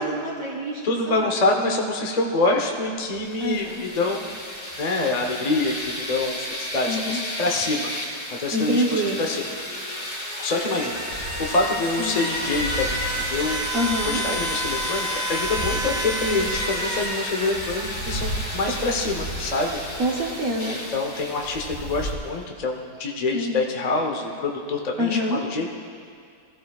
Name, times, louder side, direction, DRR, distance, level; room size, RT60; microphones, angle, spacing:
voice 1, 0.0-1.4 3.4-3.8 6.9-7.2 8.5-9.3 12.0-12.2 13.7-14.3 18.7-18.8 20.0-20.8 23.3-23.6 25.0-25.4, equal, 55° right, -4 dB, 1.3 m, -26 dB
voice 2, 0.8-4.4 4.8-8.1 8.4-9.4 10.4-13.7 14.0-19.8 20.7-25.7, left 3 dB, 40° left, 1 dB, 0.6 m, -26 dB
sound 1, 3.3-22.0, equal, 55° left, 3.1 m, -31 dB
sound 2, 11.1-22.1, equal, 80° right, 2.5 m, -36 dB
21.0 x 14.0 x 2.4 m, 2.3 s
omnidirectional pair, 2.0 m